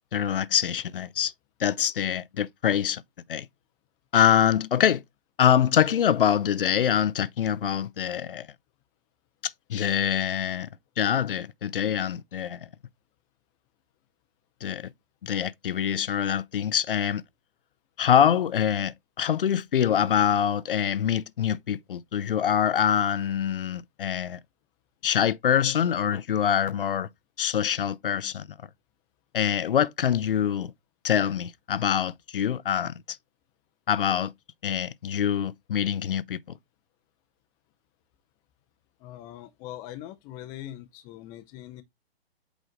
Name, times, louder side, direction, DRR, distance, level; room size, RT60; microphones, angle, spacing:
voice 1, 0.1-1.3 1.6-3.0 3.3-3.5 4.1-5.0 5.4-8.5 9.4-10.7 11.0-12.6 14.6-14.9 15.2-17.2 18.0-24.4 25.0-27.1 27.4-28.5 29.3-30.7 31.0-33.2 33.9-34.3 34.6-36.6, left 9 dB, 60° left, 0.5 m, -25 dB
voice 2, 39.0-41.8, left 13 dB, 15° left, 0.5 m, -42 dB
8.1 x 3.2 x 3.8 m
figure-of-eight pair, 125°, 31 cm